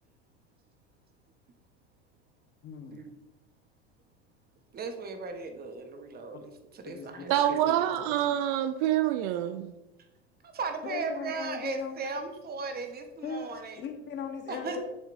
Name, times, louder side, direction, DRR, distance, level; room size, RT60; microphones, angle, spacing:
voice 1, 2.6-3.0 6.3-6.4 6.8-8.2 10.8-12.2 13.2-14.8, left 6 dB, 35° left, 1.1 m, -39 dB
voice 2, 4.7-7.6 9.5-9.7 10.4-13.8 14.5-14.8, right 4 dB, 30° right, 1.1 m, -37 dB
voice 3, 7.3-9.7, right 12 dB, 50° right, 0.4 m, -26 dB
7.0 x 7.0 x 2.6 m
hypercardioid pair, 85°, 33 cm